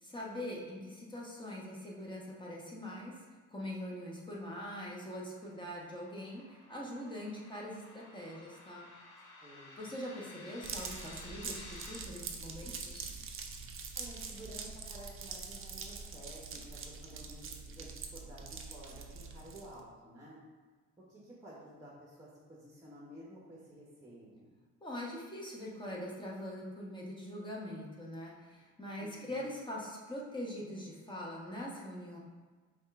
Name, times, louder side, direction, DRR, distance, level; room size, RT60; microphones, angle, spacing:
voice 1, 0.0-3.2 3.5-8.9 9.8-13.1 24.8-32.2, left 1 dB, 15° left, -4 dB, 1.0 m, -43 dB
sound 1, 4.3-12.0, left 2 dB, 80° left, 1.0 m, -54 dB
voice 2, 9.4-9.8 13.9-20.4 21.0-24.5 29.0-29.4, right 1 dB, 10° right, -5 dB, 1.0 m, -52 dB
sound 2, 10.6-19.8, right 5 dB, 45° right, 0.6 m, -44 dB
5.3 x 2.5 x 3.6 m, 1.4 s
cardioid pair, 90°, 30 cm